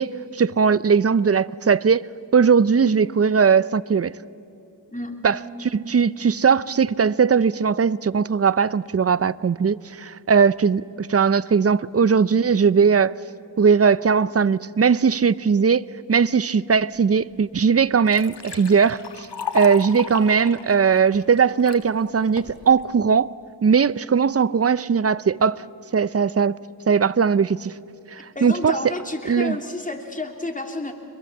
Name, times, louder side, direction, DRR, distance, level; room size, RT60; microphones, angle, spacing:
voice 1, 0.0-2.1 2.3-4.1 5.2-13.1 13.6-19.3 19.5-23.3 23.6-25.6 25.9-26.6 26.9-27.7 28.1-28.9 29.3-29.6, right 6 dB, 35° right, 0.6 m, -19 dB
voice 2, 4.9-5.3 28.3-30.9, left 2 dB, 20° left, 2.9 m, -30 dB
Liquid, 17.3-17.4 17.8-21.8 22.4-22.8, left 6 dB, 65° left, 1.8 m, -34 dB
25.0 x 22.0 x 7.3 m
cardioid pair, 40°, 43 cm